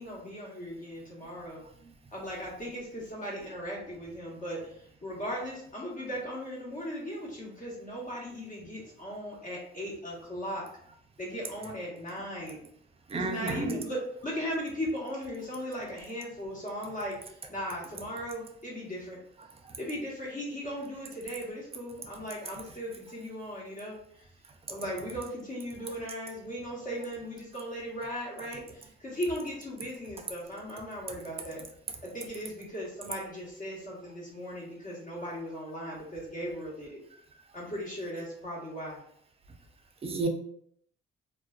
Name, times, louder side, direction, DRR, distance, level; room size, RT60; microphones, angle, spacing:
voice 1, 0.0-1.6 2.1-10.7 11.2-12.6 13.1-19.2 19.8-24.3 24.7-31.6 32.0-37.0 37.5-39.0, equal, 40° left, -4 dB, 1.0 m, -38 dB
voice 2, 13.1-13.8 40.0-40.3, right 3 dB, 30° right, 4 dB, 0.4 m, -30 dB
2.4 x 2.2 x 2.3 m, 0.67 s
cardioid pair, 90°, 20 cm